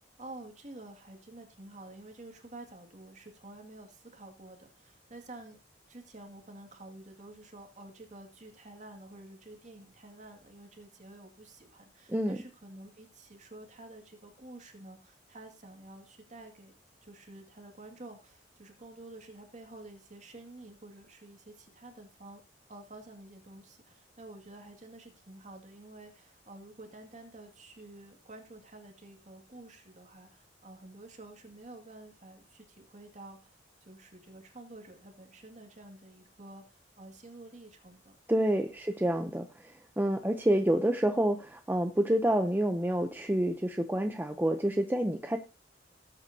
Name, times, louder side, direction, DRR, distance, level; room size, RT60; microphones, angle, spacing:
voice 1, 0.2-5.6 5.9-16.7 17.0-22.4 22.7-33.6 33.9-38.5, right 2 dB, 40° right, 4 dB, 2.2 m, -50 dB
voice 2, 38.3-45.4, right 1 dB, 10° right, 5 dB, 0.6 m, -28 dB
18.0 x 8.2 x 2.8 m, 0.30 s
head